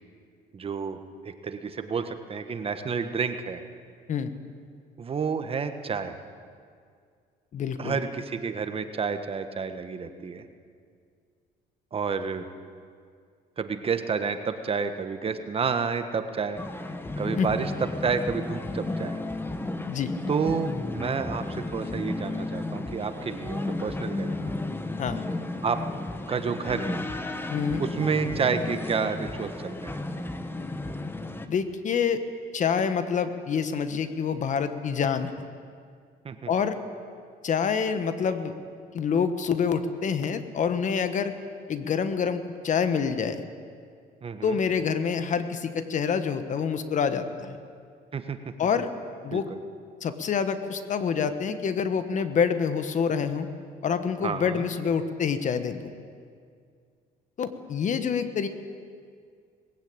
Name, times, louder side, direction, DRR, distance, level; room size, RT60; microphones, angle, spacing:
voice 1, 0.5-1.0 1.4-3.6 5.0-6.1 7.8-10.4 11.9-12.4 13.6-16.6 17.2-19.2 20.3-24.4 25.6-25.8 26.3-27.0 27.8-30.0 36.2-36.5 44.2-44.6 48.1-48.4 49.3-49.6 54.2-54.7, right 5 dB, 35° right, 9 dB, 1.3 m, -30 dB
voice 2, 7.5-8.0 17.4-17.5 19.9-20.1 25.0-25.2 27.5-27.8 31.5-32.2 32.5-35.3 36.5-36.8 37.4-38.5 38.9-41.3 41.7-43.4 44.4-47.6 48.6-48.9 49.2-49.5 50.0-53.5 53.8-55.9 57.4-58.5, left 6 dB, 45° left, 10 dB, 1.4 m, -27 dB
sound 1, 16.6-31.5, left 2 dB, 15° left, 1.3 m, -33 dB
20.0 x 16.0 x 8.8 m, 2.2 s
cardioid pair, 110°, 17 cm